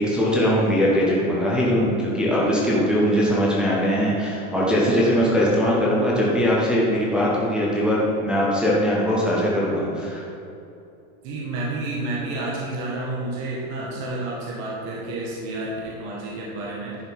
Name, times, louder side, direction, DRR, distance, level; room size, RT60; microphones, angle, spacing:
voice 1, 0.0-10.2, equal, ahead, -6 dB, 0.3 m, -21 dB
voice 2, 11.2-16.9, right 2 dB, 40° right, -4 dB, 1.5 m, -30 dB
10.5 x 5.3 x 4.5 m, 2.7 s
supercardioid pair, 155°, 42 cm